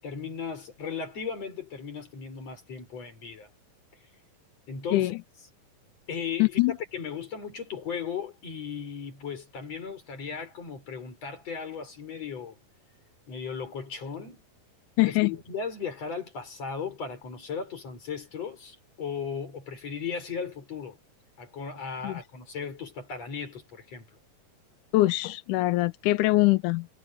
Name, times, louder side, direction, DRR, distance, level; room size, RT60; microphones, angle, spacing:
voice 1, 0.0-3.5 4.7-5.1 6.1-12.6 13.3-14.4 15.0-21.0 21.4-24.1, left 6 dB, 45° left, 6.5 m, -36 dB
voice 2, 6.4-6.7 15.0-15.3 22.0-22.1 24.9-26.9, left 18 dB, 80° left, 2.0 m, -23 dB
omnidirectional pair, 4.1 m